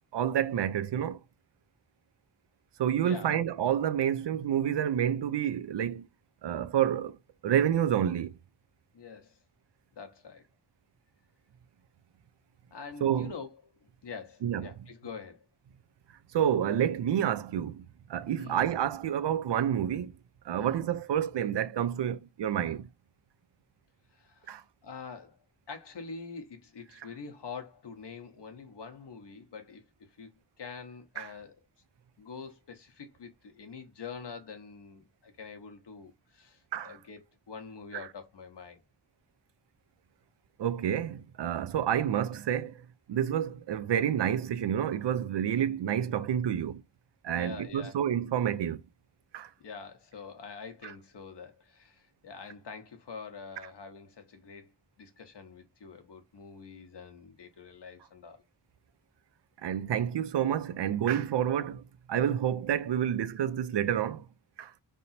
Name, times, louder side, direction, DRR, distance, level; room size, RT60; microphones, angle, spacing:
voice 1, 0.1-1.2 2.8-6.1 6.4-7.2 7.4-8.3 13.0-13.3 14.4-14.7 16.3-17.8 18.1-20.1 20.4-22.9 24.5-24.6 31.2-31.3 36.7-37.0 37.9-38.1 40.6-46.8 47.2-48.8 49.3-49.5 50.8-50.9 59.6-61.8 62.1-64.3 64.6-64.7, right 9 dB, 80° right, 0.6 m, -29 dB
voice 2, 3.0-3.4 8.9-9.4 9.9-10.4 12.7-13.5 13.8-15.5 18.4-18.6 20.6-20.8 24.1-25.4 25.7-29.8 30.2-30.3 30.6-31.5 32.2-38.8 47.3-48.0 49.6-54.7 55.0-58.4, left 5 dB, 80° left, 1.1 m, -45 dB
3.4 x 2.8 x 4.2 m
wide cardioid pair, 110°, 41 cm